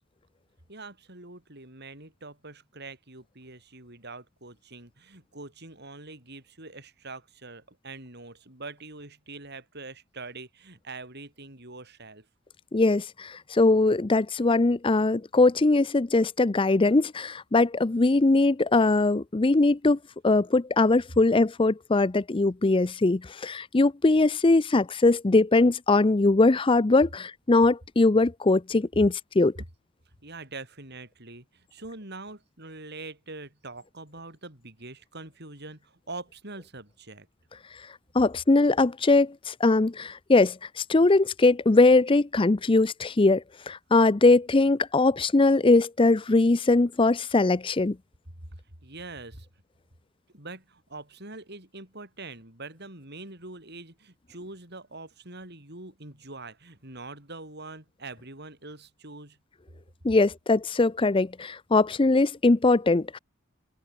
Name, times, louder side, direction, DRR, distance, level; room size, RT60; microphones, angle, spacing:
voice 1, 0.7-12.3 29.5-29.7 30.2-37.3 48.5-49.5 50.3-59.4, right 3 dB, 50° right, 7.4 m, -43 dB
voice 2, 12.7-20.0 20.2-29.5 38.1-48.0 60.0-63.2, left 2 dB, 25° left, 0.5 m, -21 dB
open air
head